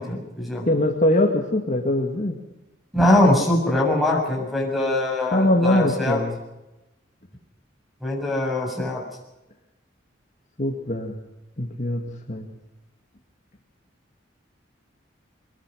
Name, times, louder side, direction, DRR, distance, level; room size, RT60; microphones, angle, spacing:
voice 1, 0.0-0.7 2.9-6.2 8.0-9.0, left 1 dB, ahead, 1 dB, 7.4 m, -22 dB
voice 2, 0.7-2.4 5.3-6.4 10.6-11.1 11.6-12.5, left 1 dB, 40° left, 2 dB, 2.3 m, -22 dB
23.5 x 21.5 x 6.5 m, 0.97 s
head